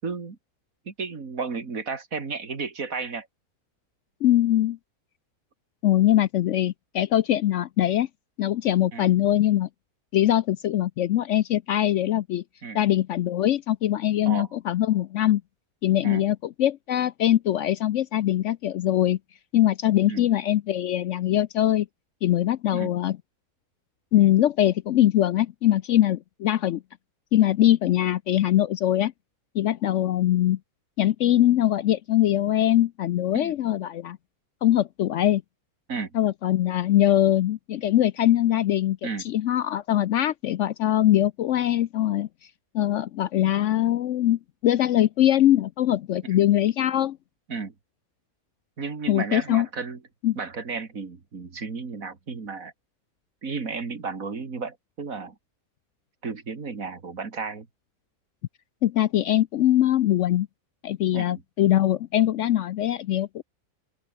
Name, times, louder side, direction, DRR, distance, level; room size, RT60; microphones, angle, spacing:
voice 1, 0.0-0.4 0.9-3.3 8.9-9.1 12.6-12.8 14.2-14.5 16.0-16.3 20.0-20.3 22.7-23.0 33.3-33.6 35.9-36.1 39.0-39.3 46.2-46.5 47.5-47.7 48.8-50.1 50.3-52.7 53.4-55.4 56.2-57.7 61.1-61.4, right 4 dB, 65° right, 2.8 m, -33 dB
voice 2, 4.2-4.8 5.8-8.1 8.4-9.7 10.1-12.4 12.7-15.4 15.8-19.2 19.5-21.9 22.2-23.2 24.1-26.8 27.3-29.1 29.5-30.6 31.0-34.2 34.6-35.4 36.1-39.0 39.2-42.3 42.7-47.2 49.1-49.7 50.2-50.4 58.8-60.5 60.8-63.4, left 12 dB, 65° left, 0.8 m, -22 dB
open air
omnidirectional pair, 1.5 m